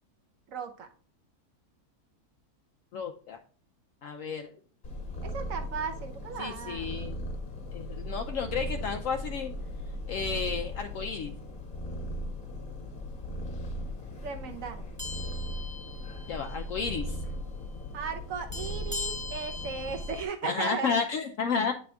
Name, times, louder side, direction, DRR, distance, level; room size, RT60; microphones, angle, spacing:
voice 1, 0.5-0.9 5.2-6.9 14.2-14.8 17.9-21.0 21.7-21.8, right 6 dB, 65° right, 7 dB, 1.1 m, -36 dB
voice 2, 2.9-3.4 4.0-4.5 6.4-7.1 7.7-9.5 10.1-11.3 16.3-17.0 20.4-21.7, left 6 dB, 70° left, 5 dB, 0.9 m, -32 dB
Purr, 4.8-20.2, equal, 45° left, 1.4 m, -38 dB
sound 1, 15.0-16.6 16.9-17.2 18.5-20.2, left 3 dB, 15° right, 0.7 m, -40 dB
8.4 x 4.3 x 3.4 m, 0.42 s
omnidirectional pair, 1.6 m